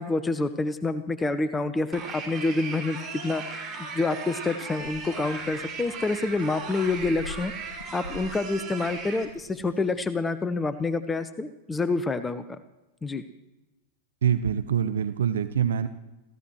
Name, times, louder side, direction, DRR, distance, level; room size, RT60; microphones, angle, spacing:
voice 1, 0.0-7.5 7.9-12.6 13.0-13.2, left 3 dB, 15° left, 13 dB, 0.8 m, -28 dB
sound 1, 1.9-9.2, right 4 dB, 25° right, 5.6 m, -37 dB
sound 2, 4.8-10.0, left 3 dB, 70° left, 1.5 m, -46 dB
voice 2, 14.2-15.9, right 8 dB, 65° right, 12 dB, 0.7 m, -25 dB
29.0 x 15.5 x 3.1 m, 1.1 s
figure-of-eight pair, 90°, 0 cm